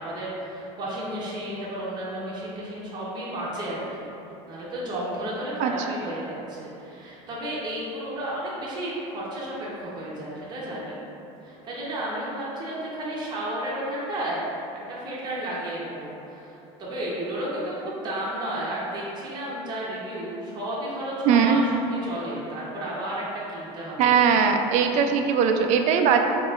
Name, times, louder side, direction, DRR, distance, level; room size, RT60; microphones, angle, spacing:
voice 1, 0.0-4.1 4.4-11.0 11.4-14.6 14.9-24.1, right 1 dB, 30° right, -7 dB, 0.9 m, -32 dB
voice 2, 21.3-21.6 24.0-26.2, right 7 dB, 55° right, 5 dB, 0.4 m, -20 dB
4.6 x 3.0 x 2.4 m, 2.9 s
supercardioid pair, 120°, 15 cm